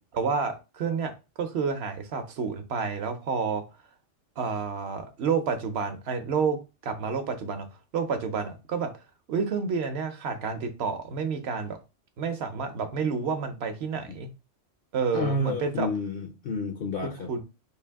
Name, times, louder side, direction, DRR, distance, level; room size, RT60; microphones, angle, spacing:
voice 1, 0.1-1.1 1.4-3.6 4.4-7.7 7.9-8.9 9.3-11.8 12.2-14.3 14.9-15.9 17.0-17.4, right 5 dB, 60° right, 0.8 m, -29 dB
voice 2, 15.1-17.3, left 2 dB, 60° left, 0.6 m, -30 dB
3.3 x 2.5 x 3.4 m
omnidirectional pair, 1.3 m